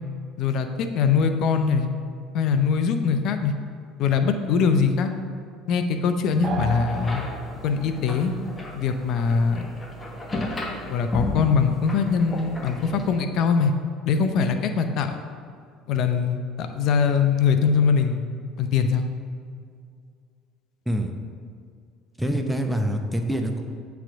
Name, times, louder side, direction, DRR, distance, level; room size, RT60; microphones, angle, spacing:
voice 1, 0.4-1.9 2.3-3.5 4.0-5.1 5.7-7.2 7.6-8.3 8.7-9.7 10.8-13.7 14.0-15.2 15.9-18.2 18.6-19.1, left 5 dB, 55° left, 7 dB, 0.6 m, -22 dB
sound 1, 6.4-7.9, right 1 dB, 45° right, 0.7 m, -32 dB
sound 2, 6.9-13.1, left 2 dB, 20° left, 1.3 m, -34 dB
voice 2, 22.2-23.6, equal, 5° right, 4 dB, 0.8 m, -25 dB
7.4 x 3.4 x 6.3 m, 2.3 s
hypercardioid pair, 65°, 0 cm